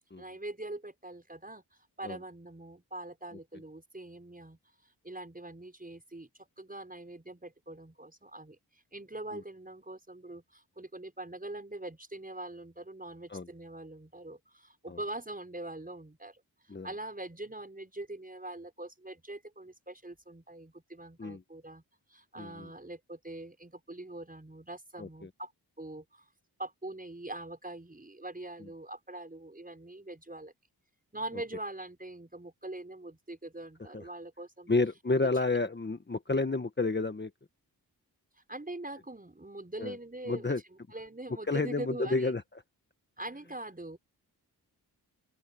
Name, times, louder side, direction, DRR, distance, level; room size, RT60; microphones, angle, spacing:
voice 1, 0.2-21.8 22.1-25.5 25.8-26.3 26.6-30.5 31.1-34.7 38.3-40.5 40.9-42.3 43.2-44.0, right 2 dB, 20° right, 6.4 m, -43 dB
voice 2, 22.4-22.7 25.0-25.3 33.9-34.0 34.7-37.3 39.8-39.9 40.3-40.6 41.5-42.4, left 3 dB, 25° left, 1.4 m, -30 dB
open air
cardioid pair, 60°, 39 cm